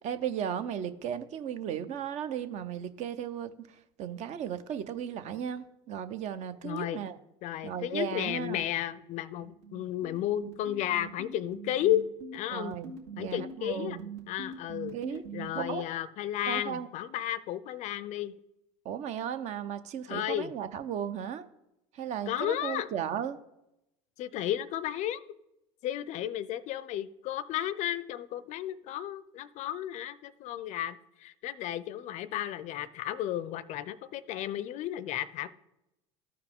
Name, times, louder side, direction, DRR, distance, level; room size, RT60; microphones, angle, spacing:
voice 1, 0.0-7.2 7.6-8.6 12.5-14.1 14.9-15.2 15.6-15.8 16.5-16.9 18.8-21.4 21.9-23.4, right 9 dB, 50° right, 11 dB, 0.7 m, -35 dB
voice 2, 6.6-7.0 7.4-12.1 12.3-12.8 13.2-14.0 14.3-15.0 15.3-18.3 20.1-20.5 22.3-22.9 24.2-25.2 25.8-35.5, left 12 dB, 50° left, 16 dB, 0.5 m, -33 dB
sound 1, 9.4-15.7, right 4 dB, 80° right, 2.0 m, -42 dB
14.0 x 4.8 x 3.6 m, 0.88 s
hypercardioid pair, 90°, 15 cm